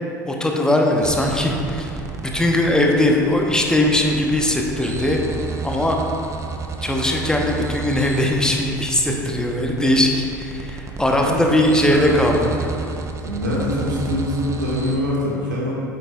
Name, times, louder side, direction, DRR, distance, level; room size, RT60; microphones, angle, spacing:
voice 1, 0.3-1.9 2.3-5.2 5.6-6.0 6.8-12.4, left 1 dB, 5° left, 0 dB, 0.9 m, -19 dB
sound 1, 1.0-15.0, right 4 dB, 30° right, 0.8 m, -32 dB
voice 2, 11.2-11.5 11.8-12.1 13.2-15.7, equal, 80° right, -5 dB, 1.7 m, -24 dB
8.9 x 8.3 x 2.4 m, 2.6 s
figure-of-eight pair, 70°, 10 cm